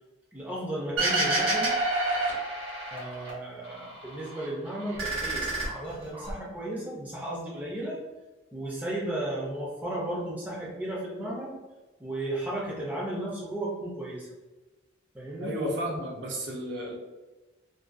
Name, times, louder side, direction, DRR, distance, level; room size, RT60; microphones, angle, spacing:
voice 1, 0.3-1.7 2.9-8.0 8.5-11.6 12.0-14.3 15.1-15.6, right 1 dB, 10° right, -5 dB, 0.4 m, -34 dB
sound 1, 1.0-3.3 3.6-4.5 4.8-6.3, right 2 dB, 80° right, 0.9 m, -28 dB
voice 2, 15.4-16.9, equal, 60° right, -1 dB, 0.5 m, -32 dB
2.4 x 2.3 x 2.4 m, 1.2 s
head